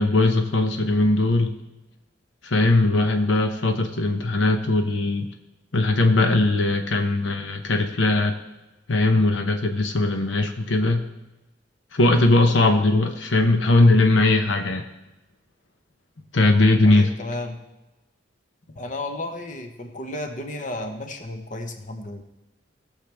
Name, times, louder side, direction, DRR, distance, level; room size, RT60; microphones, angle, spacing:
voice 1, 0.0-1.5 2.4-5.3 5.7-8.3 8.9-11.0 11.9-14.9 16.3-17.1, left 2 dB, 80° left, 5 dB, 0.9 m, -19 dB
voice 2, 16.8-17.6 18.7-22.2, left 2 dB, 45° left, 5 dB, 1.1 m, -33 dB
18.5 x 6.6 x 3.4 m, 1.0 s
head